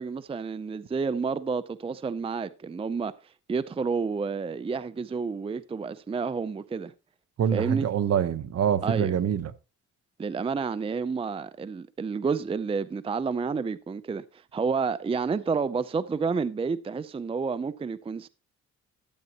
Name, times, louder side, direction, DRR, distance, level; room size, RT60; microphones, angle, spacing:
voice 1, 0.0-3.1 3.5-6.9 7.5-7.9 8.8-9.2 10.2-18.3, right 5 dB, 20° right, 0.5 m, -30 dB
voice 2, 7.4-9.5, right 8 dB, 55° right, 1.0 m, -25 dB
12.5 x 8.9 x 2.9 m
cardioid pair, 90°, 30 cm